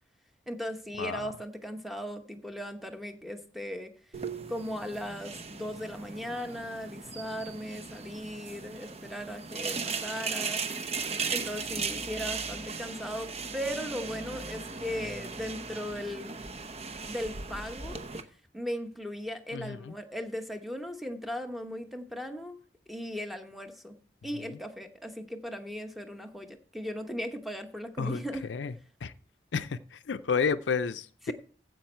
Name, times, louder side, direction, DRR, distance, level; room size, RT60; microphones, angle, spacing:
voice 1, 0.5-3.9 4.5-10.7 11.3-16.3 17.1-18.0 18.5-22.6 22.9-23.9 24.2-28.5 31.3-31.4, equal, ahead, 6 dB, 1.0 m, -37 dB
voice 2, 1.0-1.3 19.5-19.9 28.0-28.2 28.5-28.7 29.0-29.1 29.5-31.3, left 5 dB, 75° left, 13 dB, 0.5 m, -31 dB
sound 1, 4.1-18.2, right 5 dB, 35° right, 0.9 m, -37 dB
15.0 x 5.3 x 4.4 m, 0.41 s
head